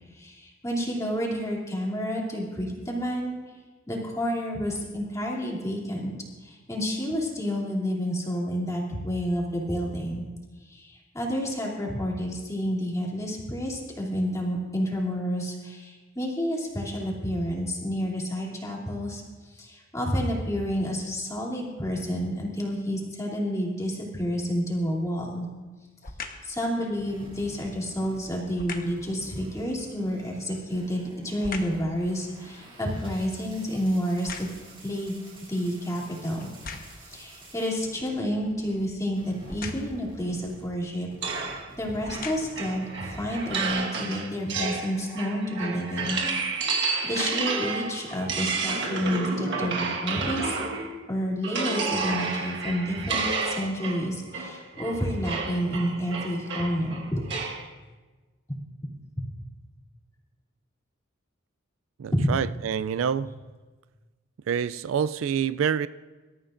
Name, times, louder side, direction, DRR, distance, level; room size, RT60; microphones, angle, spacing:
voice 1, 0.1-3.4 3.9-6.1 6.4-10.2 10.7-19.2 19.5-25.5 26.4-34.5 34.8-35.2 35.5-36.5 37.1-46.2 47.0-50.6 51.1-57.3 62.1-62.4, equal, 15° left, 2.9 m, -29 dB
sound 1, 24.9-25.3 26.0-26.5 28.5-29.0 30.5-31.9 32.4-34.9 35.5-35.6 36.4-37.1 39.4-40.0 41.1-41.2 41.9-42.7 43.3-43.4, left 4 dB, 45° left, 1.2 m, -40 dB
sound 2, 26.9-38.9 39.1-43.7, right 1 dB, 25° right, 2.8 m, -49 dB
sound 3, 41.2-51.0 51.4-57.7, right 4 dB, 60° right, 1.5 m, -31 dB
voice 2, 62.0-63.3 64.5-65.9, right 7 dB, 80° right, 0.4 m, -27 dB
25.5 x 13.5 x 2.6 m
head